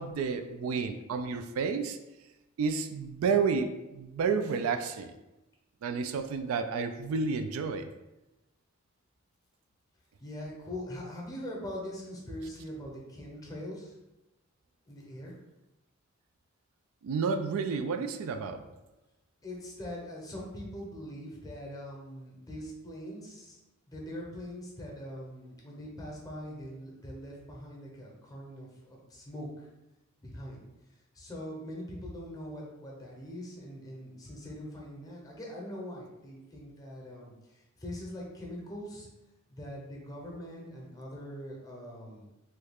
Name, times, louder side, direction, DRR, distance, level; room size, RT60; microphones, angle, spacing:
voice 1, 0.0-2.0 2.6-5.2 5.8-7.9 17.0-18.6, right 5 dB, 85° right, 7 dB, 0.3 m, -30 dB
voice 2, 10.2-14.0 14.9-15.4 19.4-23.6 23.9-29.7 30.2-30.6 31.1-39.1 39.5-42.3, equal, 20° left, -2 dB, 0.7 m, -42 dB
3.1 x 2.3 x 3.4 m, 0.99 s
head